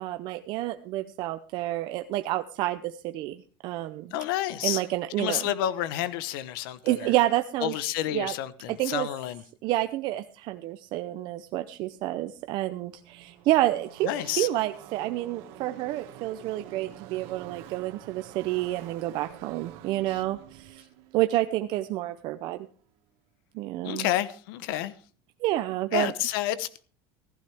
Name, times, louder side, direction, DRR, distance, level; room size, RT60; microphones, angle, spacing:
voice 1, 0.0-4.2 4.6-5.5 6.8-7.8 8.1-8.3 8.7-9.1 9.6-20.9 21.1-22.7 23.5-24.1 25.4-26.1, right 15 dB, 40° right, 0.6 m, -29 dB
voice 2, 4.1-4.8 5.2-7.1 7.6-9.4 14.0-14.5 23.8-24.9 25.9-26.8, left 13 dB, 75° left, 1.0 m, -29 dB
Car passing by / Race car auto racing, 11.9-12.0 12.2-22.8, right 11 dB, 55° right, 1.9 m, -48 dB
15.5 x 14.5 x 3.5 m
cardioid pair, 175°, 12 cm